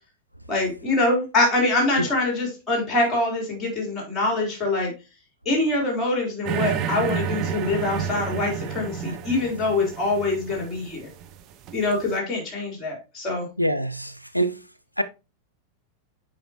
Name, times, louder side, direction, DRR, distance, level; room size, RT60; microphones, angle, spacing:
voice 1, 0.5-4.9 5.5-11.1 11.7-13.5, left 2 dB, 20° left, 3.6 m, -24 dB
sound 1, 6.4-12.0, right 8 dB, 35° right, 0.7 m, -31 dB
voice 2, 13.6-14.6 15.0-15.1, right 1 dB, 90° left, 0.3 m, -24 dB
7.8 x 5.1 x 2.9 m
figure-of-eight pair, 90°, 0 cm